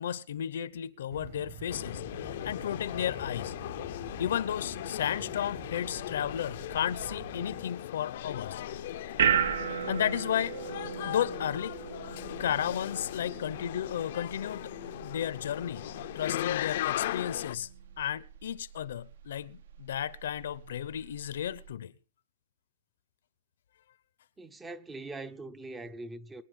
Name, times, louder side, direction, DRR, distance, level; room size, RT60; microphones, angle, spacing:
voice 1, 0.0-3.5 4.2-8.6 9.9-10.6 11.0-11.8 12.4-14.7 15.0-15.9 16.1-17.7 18.0-21.9, left 9 dB, 75° left, 0.8 m, -33 dB
sound 1, 1.1-7.6, right 8 dB, 45° right, 1.6 m, -48 dB
sound 2, 1.7-17.6, left 13 dB, 55° left, 0.6 m, -38 dB
sound 3, 8.2-21.7, right 8 dB, 70° right, 1.0 m, -36 dB
voice 2, 24.4-26.4, right 2 dB, 10° right, 0.6 m, -42 dB
23.0 x 10.0 x 3.7 m
supercardioid pair, 170°, 0 cm